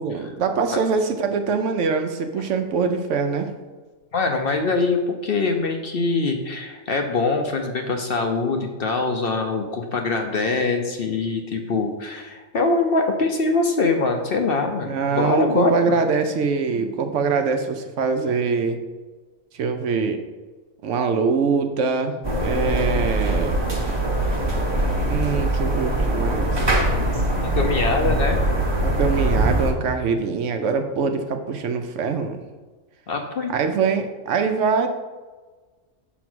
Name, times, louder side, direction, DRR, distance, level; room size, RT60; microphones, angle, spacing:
voice 1, 0.0-3.5 14.9-18.8 19.5-20.2 20.8-22.1 22.4-23.5 25.1-26.7 28.8-32.4 33.5-34.9, right 5 dB, 70° right, 6 dB, 0.9 m, -23 dB
voice 2, 4.1-16.0 27.4-28.4 33.1-33.5, left 3 dB, 55° left, 4 dB, 0.8 m, -23 dB
sound 1, 22.2-29.7, right 1 dB, 20° right, 0.9 m, -22 dB
5.9 x 4.0 x 6.1 m, 1.3 s
omnidirectional pair, 1.4 m